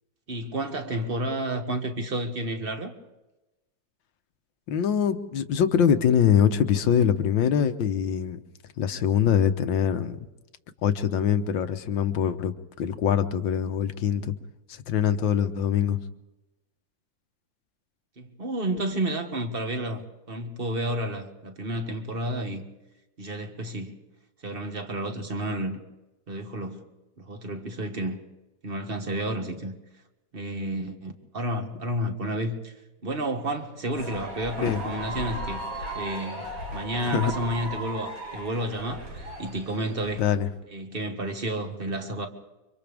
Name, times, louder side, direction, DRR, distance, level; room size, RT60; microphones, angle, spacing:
voice 1, 0.3-2.9 18.2-22.6 23.2-24.0 24.4-25.8 26.3-26.9 27.2-28.2 28.6-29.8 30.3-32.7 33.0-35.6 36.0-40.2 40.7-42.3, right 1 dB, 30° right, 1.9 m, -31 dB
voice 2, 4.7-8.4 8.8-10.2 10.8-14.4 14.7-16.0 34.6-34.8 37.0-37.3 40.2-40.5, left 8 dB, 75° left, 1.8 m, -23 dB
sound 1, 33.9-40.4, right 1 dB, 90° right, 7.3 m, -36 dB
29.5 x 25.5 x 3.5 m
omnidirectional pair, 2.1 m